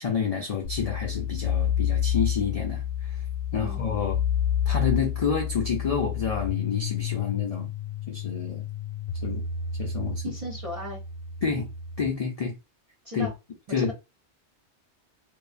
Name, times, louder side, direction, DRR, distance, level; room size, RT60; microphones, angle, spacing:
voice 1, 0.0-3.2 3.5-4.2 4.7-7.7 8.1-8.6 9.2-9.4 9.8-10.3 11.4-11.7 12.0-12.5 13.1-13.3 13.7-13.9, left 6 dB, 60° left, 0.4 m, -29 dB
sound 1, 0.6-12.1, left 9 dB, 85° left, 0.9 m, -29 dB
voice 2, 3.6-4.1 10.2-11.0 13.0-13.3 13.8-13.9, left 1 dB, 40° right, 0.5 m, -37 dB
2.6 x 2.2 x 2.4 m
omnidirectional pair, 1.2 m